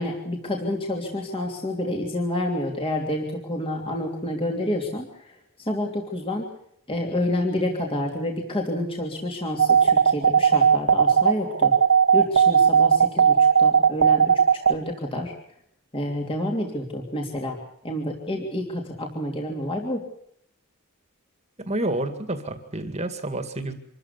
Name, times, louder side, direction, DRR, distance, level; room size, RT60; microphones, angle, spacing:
voice 1, 0.0-5.4 5.7-6.5 6.9-11.7 12.1-14.4 14.7-15.3 15.9-17.6 17.8-20.0, left 1 dB, 25° left, 1 dB, 3.0 m, -28 dB
sound 1, 9.6-14.7, right 7 dB, 55° right, 1.3 m, -16 dB
voice 2, 21.6-23.7, right 1 dB, 30° right, 8 dB, 2.1 m, -29 dB
26.0 x 14.0 x 8.4 m, 0.70 s
head